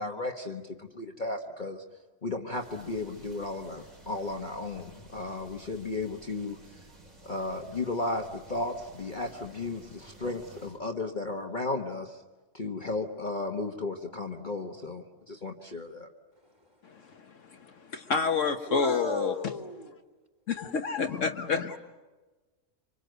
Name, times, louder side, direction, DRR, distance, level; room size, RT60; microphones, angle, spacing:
voice 1, 0.0-1.8 2.2-6.6 7.2-12.2 12.5-16.1, left 2 dB, 35° left, 2 dB, 1.4 m, -34 dB
sound 1, 2.5-10.8, right 2 dB, 80° right, 5.1 m, -53 dB
voice 2, 16.3-17.2 18.7-20.0 21.7-21.8, left 1 dB, 20° right, 3 dB, 3.5 m, -38 dB
voice 3, 17.5-19.3 20.5-21.8, left 5 dB, 65° left, 6 dB, 1.4 m, -29 dB
26.5 x 26.0 x 8.0 m, 1.2 s
omnidirectional pair, 1.5 m